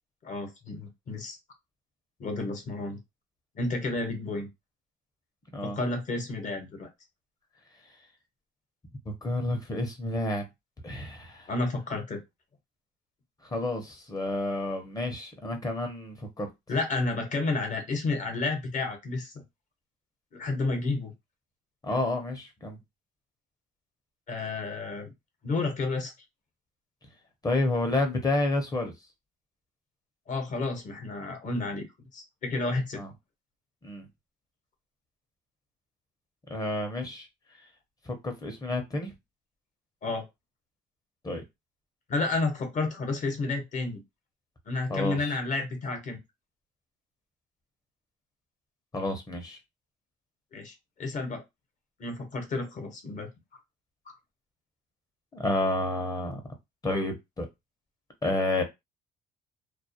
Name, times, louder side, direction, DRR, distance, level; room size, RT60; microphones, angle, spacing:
voice 1, 0.2-1.4 2.2-3.0 3.5-4.5 5.6-6.9 11.5-12.2 16.7-19.4 20.3-21.1 24.3-25.1 25.4-26.1 30.3-31.9 32.1-33.0 40.0-40.3 42.1-44.0 44.7-46.2 50.5-51.4 52.0-53.3, left 3 dB, 50° left, 0.9 m, -31 dB
voice 2, 9.2-10.5 10.8-11.5 13.4-16.5 21.8-22.8 27.4-28.9 33.0-33.1 33.8-34.1 36.5-37.3 38.1-39.1 41.2-41.4 44.9-45.4 48.9-49.6 55.4-56.4 56.8-57.5 58.2-58.6, left 2 dB, 20° left, 0.6 m, -30 dB
2.3 x 2.1 x 2.7 m
cardioid pair, 110°, 17 cm